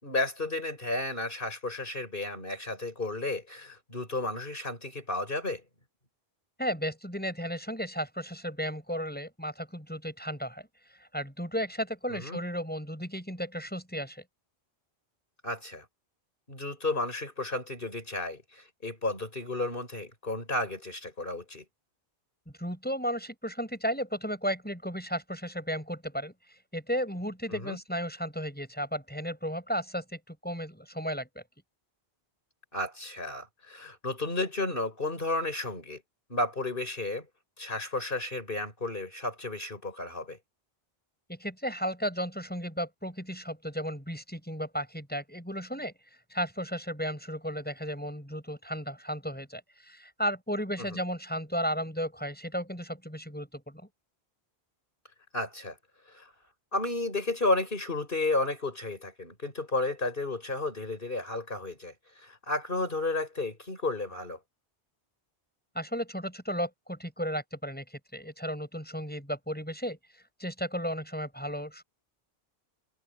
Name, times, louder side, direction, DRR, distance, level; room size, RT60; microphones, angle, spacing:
voice 1, 0.0-5.6 12.1-12.4 15.4-15.9 16.5-21.6 27.5-27.8 32.7-36.0 36.3-37.3 37.6-40.4 50.9-51.0 55.3-55.8 56.1-56.3 56.7-64.4, left 2 dB, 60° left, 5.5 m, -32 dB
voice 2, 6.6-10.7 11.0-14.2 22.6-26.3 26.7-31.4 41.3-45.9 46.3-53.8 65.7-70.0 70.4-71.8, equal, 10° left, 6.7 m, -34 dB
omnidirectional pair, 1.0 m